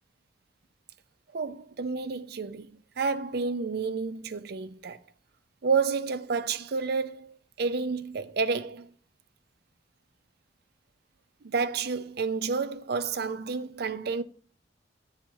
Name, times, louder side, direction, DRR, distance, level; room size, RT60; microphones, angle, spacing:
voice 1, 1.3-2.7 3.0-5.0 5.6-8.9 11.4-14.2, right 5 dB, 60° right, 0.5 m, -30 dB
8.9 x 7.3 x 2.7 m
head